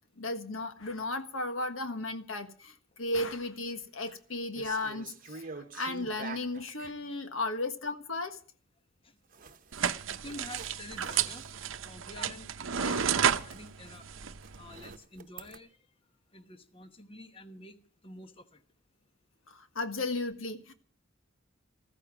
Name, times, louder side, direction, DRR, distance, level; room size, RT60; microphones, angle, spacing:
voice 1, 0.2-8.4 12.8-13.3 19.5-20.7, left 2 dB, 80° left, 1.5 m, -35 dB
sound 1, 3.8-4.2 4.5-7.0 9.3-11.9 12.3-12.5 12.8-15.6, right 4 dB, 45° right, 1.0 m, -48 dB
voice 2, 9.0-9.5 10.0-11.4 11.8-13.1 13.4-14.1 14.6-15.8 16.3-17.8 18.0-18.6, left 2 dB, 25° left, 1.1 m, -49 dB
sound 2, 9.7-15.0, right 8 dB, 75° right, 0.8 m, -32 dB
14.5 x 14.0 x 6.0 m
head